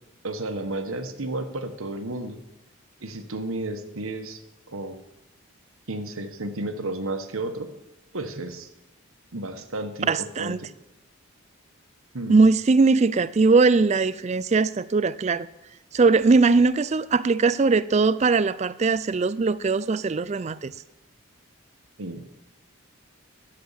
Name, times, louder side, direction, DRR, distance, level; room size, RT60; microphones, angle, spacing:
voice 1, 0.2-2.4 3.0-4.4 4.7-5.0 5.9-7.7 8.1-8.7 9.3-10.7 12.1-12.4 22.0-22.2, right 2 dB, 75° right, 1.2 m, -32 dB
voice 2, 10.1-10.6 12.3-15.5 15.9-20.7, right 4 dB, 30° right, 0.3 m, -20 dB
12.0 x 7.9 x 7.3 m
head